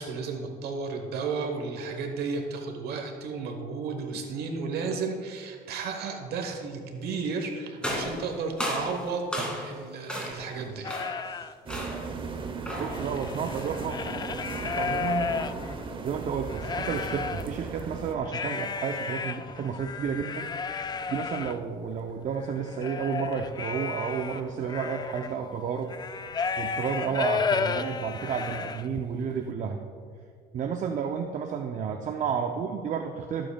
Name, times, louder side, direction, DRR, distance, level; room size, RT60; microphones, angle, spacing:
voice 1, 0.0-9.3 9.6-10.9 11.2-11.5, right 4 dB, 70° right, 4 dB, 1.2 m, -33 dB
sound 1, 7.8-9.8 10.1-10.5 10.9-11.3 11.7-12.1 12.6-13.0, left 1 dB, 5° left, 2.2 m, -34 dB
sound 2, 10.8-11.5 12.0-12.1 12.4-16.0 16.4-17.5 18.2-29.1, left 5 dB, 25° left, 0.4 m, -33 dB
sound 3, 11.7-18.2, right 4 dB, 30° right, 0.9 m, -37 dB
voice 2, 12.7-14.0 14.6-15.3 16.0-20.5 21.1-25.9 26.6-29.8 30.5-33.5, right 6 dB, 50° right, 5 dB, 0.6 m, -31 dB
16.5 x 7.7 x 2.3 m, 2.1 s
cardioid pair, 110°, 17 cm